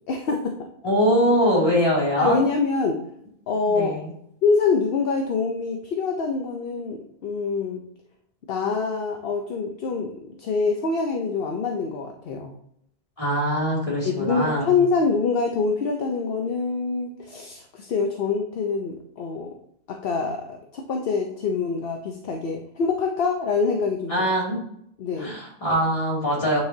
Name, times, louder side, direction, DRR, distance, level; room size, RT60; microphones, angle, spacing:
voice 1, 0.1-0.5 2.2-3.0 3.5-4.0 4.4-7.8 8.5-12.5 14.0-19.5 19.9-24.1 25.0-25.3, left 4 dB, 70° left, 3 dB, 0.9 m, -25 dB
voice 2, 0.8-2.4 3.6-4.1 13.2-14.7 24.1-24.6 25.2-26.6, equal, 35° left, -5 dB, 2.6 m, -22 dB
9.5 x 4.9 x 2.7 m, 0.74 s
omnidirectional pair, 1.1 m